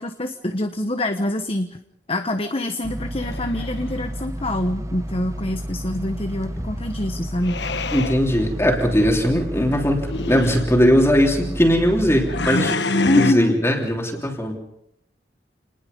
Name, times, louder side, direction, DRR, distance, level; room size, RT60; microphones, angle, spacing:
voice 1, 0.0-1.8 2.1-7.6 13.0-13.5, left 1 dB, 35° left, 7 dB, 1.1 m, -25 dB
sound 1, 2.8-12.5, equal, 15° right, 0.9 m, -31 dB
sound 2, 3.2-4.0 7.4-8.2 8.9-9.3 10.0-10.7 12.3-13.3, left 3 dB, 75° left, 1.2 m, -26 dB
voice 2, 7.9-14.7, equal, 15° left, 0 dB, 3.2 m, -19 dB
28.5 x 20.5 x 5.4 m, 0.76 s
head